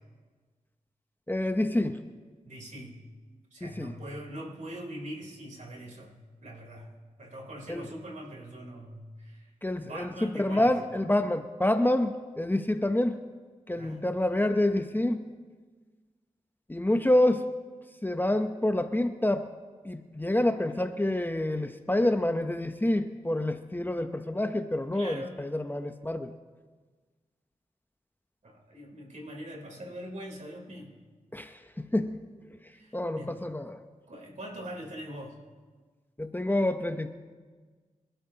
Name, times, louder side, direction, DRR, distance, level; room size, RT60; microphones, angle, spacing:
voice 1, 1.3-2.0 3.6-3.9 7.7-7.9 9.6-13.2 13.7-15.3 16.7-17.5 18.0-19.5 19.8-26.3 31.3-32.3 32.9-33.8 36.2-37.1, left 1 dB, 15° left, 8 dB, 0.8 m, -27 dB
voice 2, 2.5-3.0 3.5-6.2 6.4-6.9 7.2-9.5 9.8-10.7 13.8-14.2 24.9-25.3 28.4-30.9 32.7-33.3 34.1-35.4, right 1 dB, 60° right, -1 dB, 3.6 m, -42 dB
26.5 x 12.5 x 2.9 m, 1.4 s
cardioid pair, 50°, 14 cm